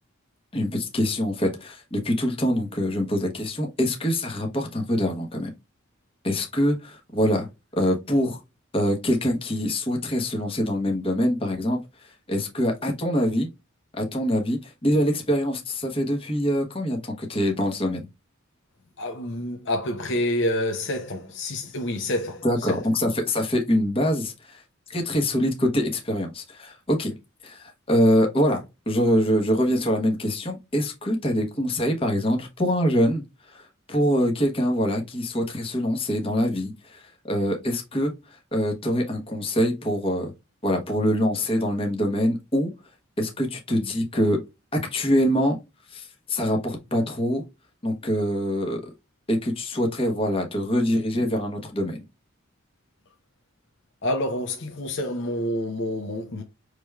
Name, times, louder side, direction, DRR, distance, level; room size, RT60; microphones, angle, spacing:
voice 1, 0.5-5.5 6.2-7.5 7.7-8.4 8.7-13.5 14.0-18.1 22.4-24.6 24.9-27.1 27.4-33.2 33.5-33.6 33.9-40.3 40.6-42.7 43.2-44.4 44.7-45.6 45.9-47.4 47.8-48.9 49.3-52.0, equal, 25° left, 1.0 m, -24 dB
voice 2, 19.0-22.8 54.0-56.4, left 1 dB, 55° left, 0.8 m, -28 dB
5.9 x 3.3 x 2.3 m
head